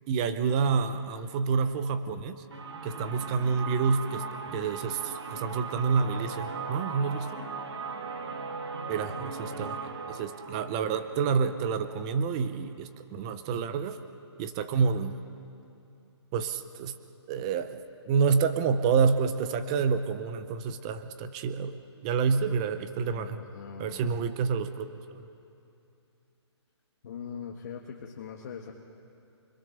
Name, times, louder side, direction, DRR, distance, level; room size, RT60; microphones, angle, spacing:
voice 1, 0.1-2.4 2.8-4.2 4.5-7.5 8.9-9.8 10.1-14.0 14.4-15.1 16.3-16.9 17.3-17.8 18.1-21.8 22.0-23.4 23.8-24.9 25.1-25.3, right 5 dB, 15° right, 11 dB, 0.5 m, -28 dB
sound 1, 2.5-12.2, right 4 dB, 65° right, 2.1 m, -38 dB
voice 2, 8.8-9.9 22.4-22.7 23.0-24.2 27.0-28.7, left 7 dB, 35° left, 1 dB, 1.5 m, -43 dB
28.5 x 22.0 x 6.6 m, 2.7 s
hypercardioid pair, 170°, 15 cm